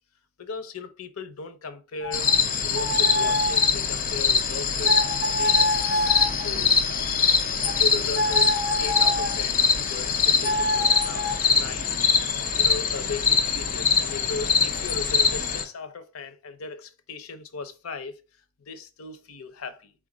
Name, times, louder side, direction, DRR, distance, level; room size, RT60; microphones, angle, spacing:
voice 1, 0.4-2.3 2.6-5.7 6.4-6.8 7.6-12.0 12.6-18.1 18.7-19.9, left 4 dB, 90° left, 0.6 m, -37 dB
sound 1, 2.0-9.4 10.4-13.3, left 1 dB, 5° right, 1.4 m, -29 dB
sound 2, 2.1-15.6, left 5 dB, 40° left, 0.5 m, -23 dB
4.4 x 2.5 x 4.8 m
head